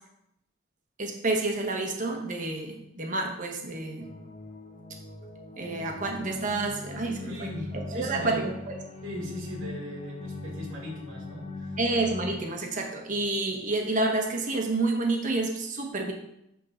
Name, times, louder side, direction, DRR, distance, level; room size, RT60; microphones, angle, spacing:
voice 1, 1.0-4.1 5.6-8.7 11.8-16.1, right 2 dB, 40° right, 2 dB, 1.1 m, -29 dB
sound 1, 4.0-12.3, left 3 dB, 30° left, 1.0 m, -40 dB
voice 2, 7.3-8.4 9.0-11.8 13.0-13.1, equal, 85° right, -1 dB, 1.9 m, -39 dB
10.5 x 3.8 x 3.8 m, 0.80 s
head